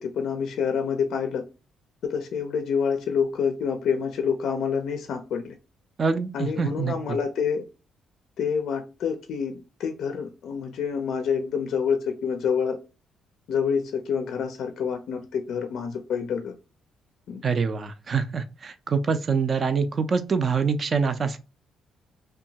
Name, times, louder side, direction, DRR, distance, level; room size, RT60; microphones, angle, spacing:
voice 1, 0.0-1.4 2.0-5.5 6.3-7.6 8.4-12.8 13.5-16.5 17.3-17.4, left 6 dB, 70° left, 0.4 m, -27 dB
voice 2, 6.0-6.9 17.4-21.4, right 5 dB, 45° right, 0.4 m, -25 dB
2.7 x 2.2 x 2.7 m
cardioid pair, 90°, 0 cm